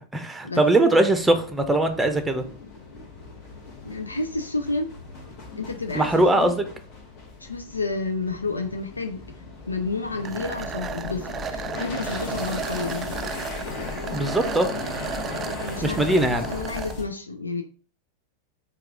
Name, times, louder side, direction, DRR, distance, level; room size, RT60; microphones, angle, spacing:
voice 1, 0.1-2.4 5.9-6.6 14.1-14.7 15.8-16.5, right 2 dB, 5° right, 7 dB, 0.7 m, -21 dB
sound 1, 1.0-17.0, left 3 dB, 40° left, 1.3 m, -37 dB
voice 2, 3.8-4.9 5.5-6.7 7.4-9.2 9.7-13.2 15.7-17.6, left 3 dB, 80° left, 6 dB, 0.5 m, -30 dB
sound 2, 10.2-16.9, right 7 dB, 25° right, 0.3 m, -34 dB
4.5 x 2.4 x 4.9 m, 0.40 s
figure-of-eight pair, 90°, 0 cm